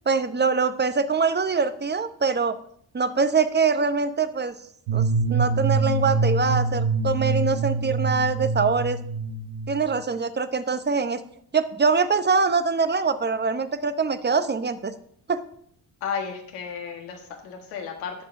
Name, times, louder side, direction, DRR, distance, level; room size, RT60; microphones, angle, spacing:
voice 1, 0.1-2.6 2.9-4.5 4.9-9.0 9.7-11.2 11.5-14.9 15.3-15.4, right 5 dB, 20° right, 12 dB, 0.7 m, -23 dB
sound 1, 4.9-10.0, right 3 dB, 70° right, 0.8 m, -25 dB
voice 2, 16.0-18.2, left 6 dB, 80° left, 2 dB, 1.5 m, -33 dB
17.5 x 6.7 x 2.6 m, 0.65 s
hypercardioid pair, 45°, 49 cm